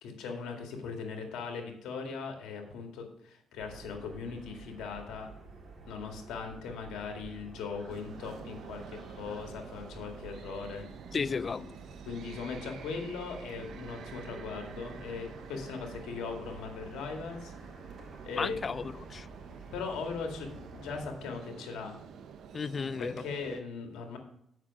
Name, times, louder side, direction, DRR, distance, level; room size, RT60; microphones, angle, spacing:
voice 1, 0.0-5.3 5.9-10.9 12.1-17.5 18.2-18.6 19.7-22.0 23.0-24.2, left 5 dB, 85° left, 1.9 m, -39 dB
sound 1, 3.6-21.1, right 3 dB, 40° right, 3.2 m, -50 dB
sound 2, 7.9-23.6, right 7 dB, 70° right, 0.7 m, -49 dB
voice 2, 11.1-11.8 18.3-19.3 22.5-23.2, left 5 dB, 40° left, 0.3 m, -34 dB
7.6 x 6.0 x 6.0 m
cardioid pair, 90°, 0 cm